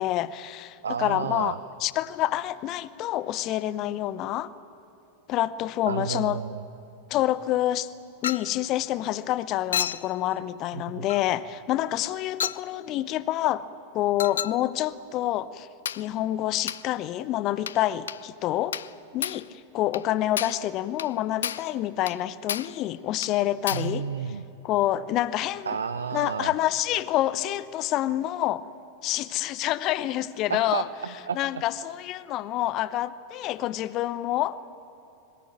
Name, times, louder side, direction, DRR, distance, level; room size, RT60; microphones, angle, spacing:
voice 1, 0.0-1.5 1.8-4.5 5.3-6.4 7.1-7.9 8.2-13.7 13.9-15.7 16.0-18.8 19.1-24.1 24.6-25.8 26.1-28.7 29.0-30.9 31.3-34.6, left 14 dB, 35° left, 18 dB, 0.8 m, -27 dB
voice 2, 0.8-1.6 5.9-6.6 10.7-11.1 23.7-24.4 25.7-26.5 30.5-31.4, right 6 dB, 70° right, 12 dB, 0.7 m, -31 dB
Chink clink, 8.2-8.6 9.7-10.1 11.1-11.3 12.4-12.7 14.2-14.6 15.9-16.1 16.7-16.9 17.7-17.8 18.1-18.2 18.7-19.0 19.2-19.5 19.9-20.1 20.4-20.7 21.0-21.1 21.4-21.7 22.1-22.2 22.5-22.8 23.2-23.3 23.7-23.9, left 9 dB, 65° left, 0.5 m, -31 dB
22.0 x 19.5 x 9.0 m, 3.0 s
figure-of-eight pair, 90°, 0 cm